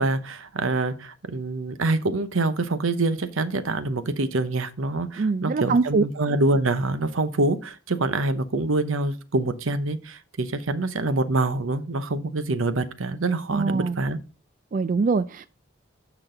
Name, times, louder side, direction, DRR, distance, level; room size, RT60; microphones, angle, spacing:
voice 1, 0.0-14.2, right 2 dB, 80° right, 0.8 m, -25 dB
voice 2, 5.2-6.0 13.5-14.0 14.7-15.5, right 4 dB, 40° right, 0.3 m, -23 dB
8.8 x 6.1 x 3.8 m
head